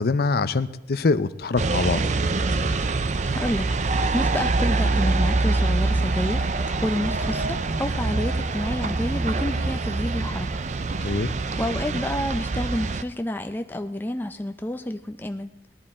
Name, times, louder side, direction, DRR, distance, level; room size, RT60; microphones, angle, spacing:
voice 1, 0.0-2.0 11.0-11.3, left 3 dB, 55° left, 14 dB, 0.6 m, -23 dB
sound 1, 1.6-13.0, right 3 dB, 40° right, 0.5 m, -25 dB
voice 2, 3.3-3.7 4.1-10.5 11.0-11.3 11.6-15.5, left 1 dB, 10° left, 6 dB, 0.5 m, -29 dB
19.0 x 11.5 x 4.3 m, 0.98 s
head